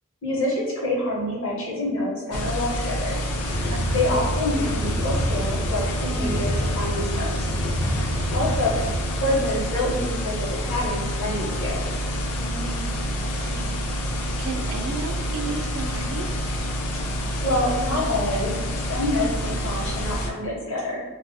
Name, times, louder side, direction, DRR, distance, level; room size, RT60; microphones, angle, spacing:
voice 1, 0.2-3.2 3.9-7.5 8.3-8.7 9.1-11.8 17.4-18.5 18.9-21.0, left 1 dB, 60° left, -4 dB, 0.9 m, -26 dB
sound 1, 2.3-20.3, equal, 85° left, 0.4 m, -28 dB
sound 2, 3.4-9.0, equal, 15° left, 0.4 m, -28 dB
voice 2, 3.7-4.0 8.0-8.5 12.5-13.8 14.4-16.3, right 4 dB, 70° right, 6 dB, 0.3 m, -35 dB
2.5 x 2.3 x 2.6 m, 1.2 s
head